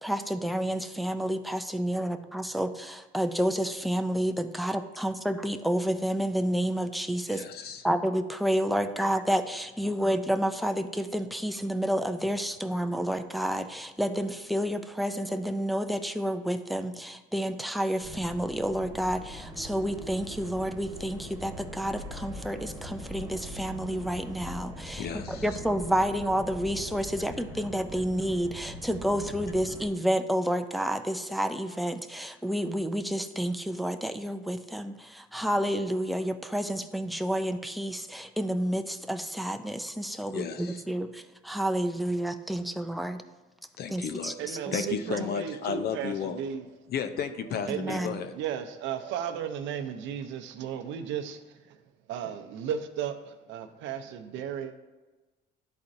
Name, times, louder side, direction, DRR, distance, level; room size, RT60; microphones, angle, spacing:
voice 1, 0.0-7.4 7.8-43.2 43.9-44.9 45.2-45.3 47.7-48.2, equal, ahead, 7 dB, 0.4 m, -30 dB
voice 2, 7.3-7.8 9.0-9.1 25.0-25.4 40.3-40.8 43.8-44.3 44.7-46.4 46.9-48.3, left 7 dB, 60° left, 10 dB, 0.6 m, -33 dB
sound 1, 18.0-29.9, left 1 dB, 15° right, 1.5 m, -42 dB
voice 3, 44.1-46.9 47.4-51.8 52.1-54.7, right 8 dB, 80° right, 7 dB, 0.6 m, -35 dB
11.5 x 4.2 x 2.6 m, 1.2 s
cardioid pair, 105°, 19 cm